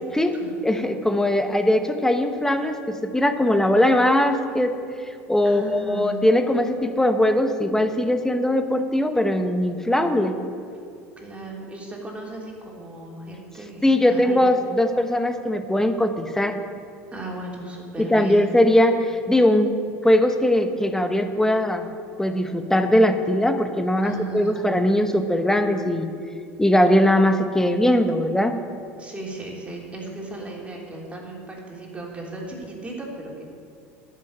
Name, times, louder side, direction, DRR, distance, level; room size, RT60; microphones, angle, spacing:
voice 1, 0.6-4.7 5.3-10.4 13.8-16.6 18.0-19.7 20.0-21.9 22.2-26.1 26.6-28.6, left 1 dB, 5° left, 8 dB, 1.0 m, -20 dB
voice 2, 5.4-6.3 11.2-14.4 17.1-18.5 24.0-24.7 29.0-33.4, right 2 dB, 15° right, -2 dB, 3.2 m, -36 dB
11.5 x 6.5 x 8.7 m, 2.4 s
hypercardioid pair, 85°, 7 cm